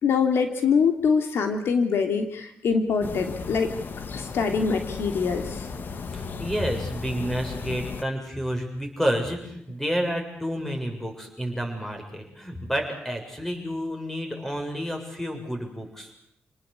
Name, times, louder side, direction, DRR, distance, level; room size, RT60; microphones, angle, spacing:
voice 1, 0.0-3.7 4.1-5.7, left 5 dB, 80° left, 6 dB, 3.0 m, -24 dB
sound 1, 3.0-8.0, left 5 dB, 55° left, 1.9 m, -35 dB
voice 2, 6.1-16.1, equal, 5° left, 3 dB, 7.2 m, -30 dB
28.5 x 19.0 x 8.4 m, 0.70 s
cardioid pair, 100°, 4 cm